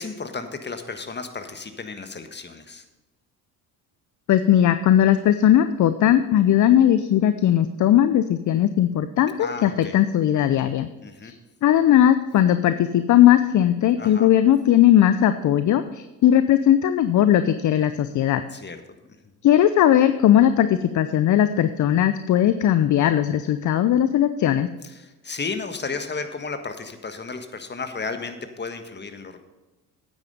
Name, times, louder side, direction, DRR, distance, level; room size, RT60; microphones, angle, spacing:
voice 1, 0.0-2.8 9.4-10.0 11.0-11.3 14.0-14.3 18.5-18.8 24.8-29.4, left 4 dB, 20° left, 8 dB, 1.5 m, -33 dB
voice 2, 4.3-10.9 11.2-11.4 11.6-18.4 19.4-24.7, left 11 dB, 40° left, 12 dB, 0.6 m, -18 dB
9.3 x 9.2 x 5.3 m, 1.1 s
hypercardioid pair, 60°, 47 cm